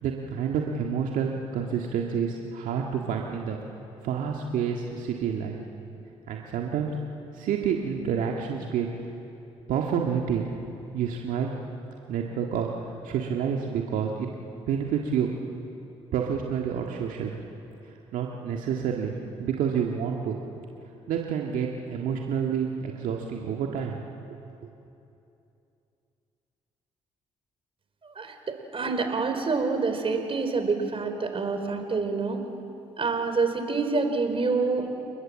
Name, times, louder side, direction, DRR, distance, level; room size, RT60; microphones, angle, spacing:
voice 1, 0.0-3.6 4.0-5.6 6.3-6.9 7.3-8.9 9.7-10.5 10.9-11.5 12.1-14.3 14.7-15.3 16.1-17.4 17.8-19.1 19.4-20.4 21.1-24.0 24.3-24.4, right 7 dB, 75° right, 0 dB, 1.8 m, -29 dB
voice 2, 28.0-32.5 33.0-34.9, right 4 dB, 40° right, 6 dB, 4.1 m, -27 dB
30.0 x 20.5 x 7.5 m, 2.8 s
hypercardioid pair, 50°, 14 cm